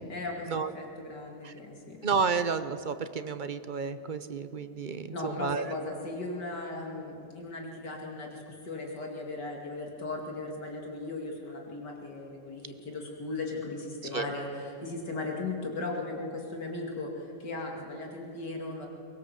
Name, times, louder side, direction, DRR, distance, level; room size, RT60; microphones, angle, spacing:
voice 1, 0.1-2.0 5.1-18.9, left 2 dB, 75° left, 1 dB, 3.1 m, -37 dB
voice 2, 2.0-5.7 14.1-14.3, right 5 dB, 50° right, 11 dB, 0.5 m, -31 dB
23.0 x 20.5 x 7.6 m, 2.6 s
omnidirectional pair, 1.9 m